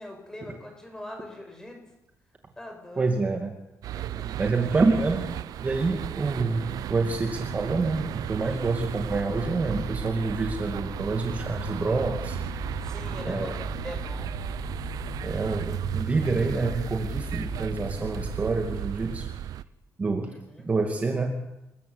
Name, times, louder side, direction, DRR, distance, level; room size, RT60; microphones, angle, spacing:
voice 1, 0.0-1.8 2.6-3.1 3.9-4.3 8.4-8.6 12.8-14.3 20.5-20.7, left 1 dB, 10° left, 3 dB, 7.2 m, -42 dB
voice 2, 3.0-3.5 4.4-5.3 5.6-12.8 13.2-13.6 15.2-19.3 20.0-20.3 20.6-21.3, right 3 dB, 25° right, 4 dB, 2.5 m, -27 dB
sound 1, 3.8-19.6, right 11 dB, 85° right, 0.9 m, -35 dB
sound 2, 9.1-18.4, left 5 dB, 40° left, 1.5 m, -39 dB
28.0 x 21.5 x 9.7 m, 0.93 s
wide cardioid pair, 175°, 6 cm